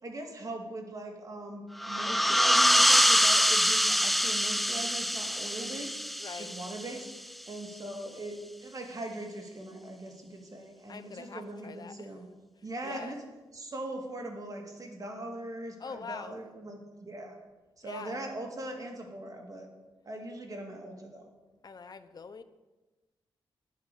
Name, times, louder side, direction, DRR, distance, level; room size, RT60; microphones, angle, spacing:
voice 1, 0.0-12.2 12.6-13.2 13.5-17.4 17.8-19.7 20.0-21.3, right 1 dB, 40° right, 2 dB, 2.0 m, -41 dB
sound 1, 1.8-7.2, equal, ahead, 0.3 m, -25 dB
voice 2, 6.2-6.6 10.9-12.1 12.8-13.2 15.8-16.4 17.8-18.2 21.6-22.4, left 5 dB, 45° left, 12 dB, 0.7 m, -44 dB
9.6 x 6.0 x 8.4 m, 1.2 s
cardioid pair, 85°, 9 cm